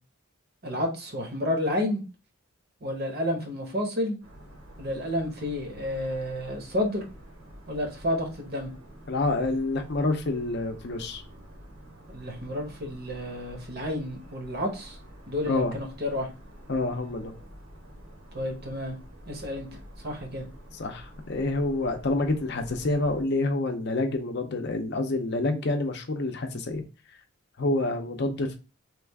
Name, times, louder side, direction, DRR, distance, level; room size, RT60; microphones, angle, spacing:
voice 1, 0.6-2.0 2.8-4.2 4.8-7.0 7.7-8.7 12.1-15.0 15.3-16.3 18.3-19.0 19.3-19.7 20.0-20.4, left 1 dB, 45° right, 2 dB, 0.9 m, -30 dB
sound 1, 4.2-23.2, equal, 65° right, 1.2 m, -48 dB
voice 2, 9.1-11.2 15.5-15.7 16.7-17.3 20.7-26.8 27.6-28.6, left 2 dB, 50° left, 6 dB, 0.6 m, -27 dB
3.2 x 2.4 x 3.4 m, 0.31 s
head